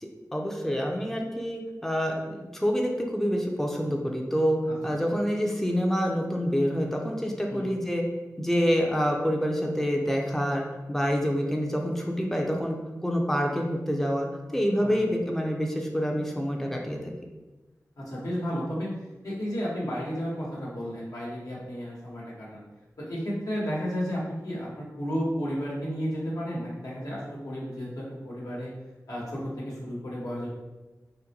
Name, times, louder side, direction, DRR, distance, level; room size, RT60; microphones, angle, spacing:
voice 1, 0.0-8.0 8.4-12.8 13.0-14.3 14.5-17.1, equal, 5° left, 0 dB, 0.5 m, -27 dB
voice 2, 18.0-19.0 19.2-22.6 23.0-28.7 29.1-30.5, equal, 75° left, -6 dB, 1.1 m, -32 dB
3.8 x 2.1 x 2.8 m, 1.1 s
cardioid pair, 45°, 6 cm